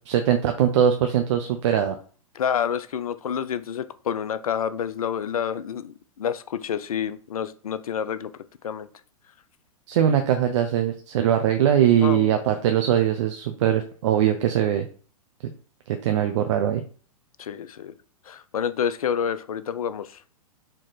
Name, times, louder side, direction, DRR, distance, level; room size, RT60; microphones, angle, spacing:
voice 1, 0.1-1.9 9.9-14.9 16.0-16.8, right 10 dB, 50° right, 5 dB, 0.6 m, -21 dB
voice 2, 2.3-8.3 8.6-8.9 12.0-12.3 17.4-17.9 18.3-20.2, left 8 dB, 70° left, 13 dB, 0.5 m, -28 dB
4.4 x 3.0 x 3.9 m, 0.41 s
figure-of-eight pair, 105°, 19 cm